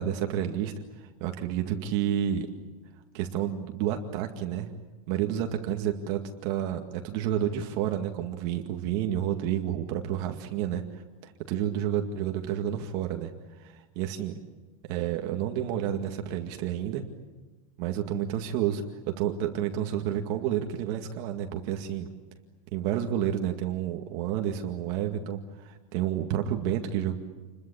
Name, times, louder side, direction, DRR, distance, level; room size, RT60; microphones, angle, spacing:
voice 1, 0.0-2.5 3.1-4.7 5.1-13.3 13.6-14.3 14.9-17.0 17.8-22.1 22.7-27.2, right 10 dB, 35° right, 4 dB, 2.1 m, -30 dB
29.0 x 22.5 x 8.7 m, 1.2 s
supercardioid pair, 175°, 18 cm